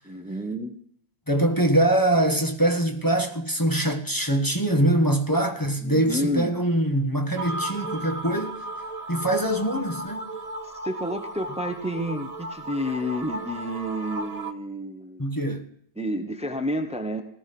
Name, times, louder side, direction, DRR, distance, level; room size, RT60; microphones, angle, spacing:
voice 1, 0.0-0.8 5.8-6.5 10.6-15.2 16.0-17.2, equal, 5° right, 1.2 m, -30 dB
voice 2, 1.3-8.5 9.1-10.2 15.2-15.7, right 1 dB, 20° left, 1.4 m, -23 dB
sound 1, 7.4-14.5, right 1 dB, 35° right, 1.0 m, -35 dB
17.5 x 13.0 x 6.1 m
omnidirectional pair, 1.1 m